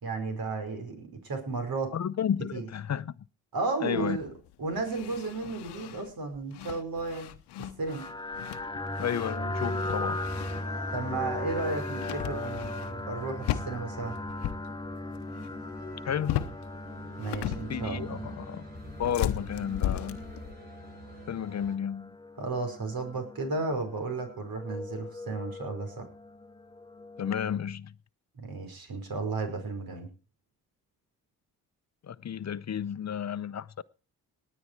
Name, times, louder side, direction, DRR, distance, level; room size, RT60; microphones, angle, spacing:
voice 1, 0.0-1.9 2.5-2.7 3.5-4.3 4.6-7.3 7.8-8.0 10.9-14.2 17.2-18.2 22.4-26.1 28.3-30.1, right 3 dB, 60° right, 5.0 m, -33 dB
voice 2, 1.9-3.2 3.8-4.2 9.0-10.2 16.0-16.5 17.7-18.6 19.0-20.2 21.3-22.1 27.2-27.9 32.0-33.8, left 8 dB, 45° left, 0.7 m, -32 dB
sound 1, 4.0-11.0 11.2-13.1 13.4-14.7 14.9-15.5 15.8-16.7 17.0-18.0 18.7-20.5, left 12 dB, 85° left, 0.9 m, -36 dB
sound 2, 7.9-27.6, left 2 dB, 10° left, 1.0 m, -38 dB
sound 3, 10.2-21.7, right 1 dB, 25° right, 7.9 m, -46 dB
19.0 x 8.8 x 4.6 m
supercardioid pair, 50°, 39 cm